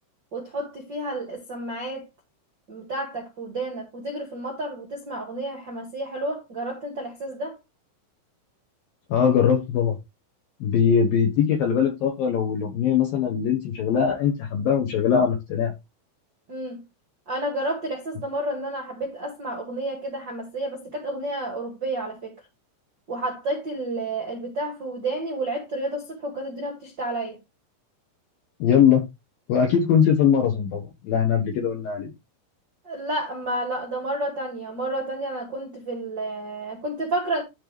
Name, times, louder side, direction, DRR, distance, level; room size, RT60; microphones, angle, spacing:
voice 1, 0.3-2.1 2.7-7.6 16.5-16.8 17.3-22.3 23.1-27.4 32.8-37.4, right 1 dB, 55° right, 1.2 m, -30 dB
voice 2, 9.1-10.0 10.6-15.7 28.6-29.0 29.5-32.1, left 7 dB, 65° left, 2.3 m, -21 dB
12.5 x 4.5 x 3.4 m
omnidirectional pair, 5.9 m